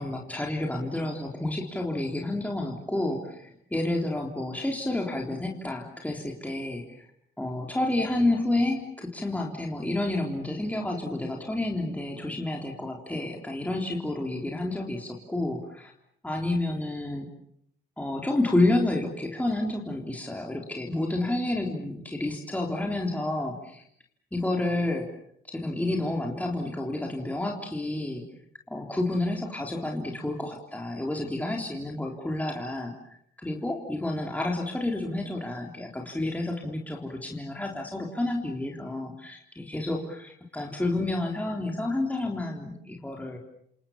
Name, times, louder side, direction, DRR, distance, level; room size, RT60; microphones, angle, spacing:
voice 1, 0.0-7.1 7.4-15.9 16.2-17.3 18.0-23.8 24.3-25.1 25.5-28.2 28.7-32.9 33.4-43.4, left 2 dB, 5° left, 1 dB, 3.6 m, -30 dB
29.5 x 27.0 x 7.2 m, 0.71 s
cardioid pair, 90°, 20 cm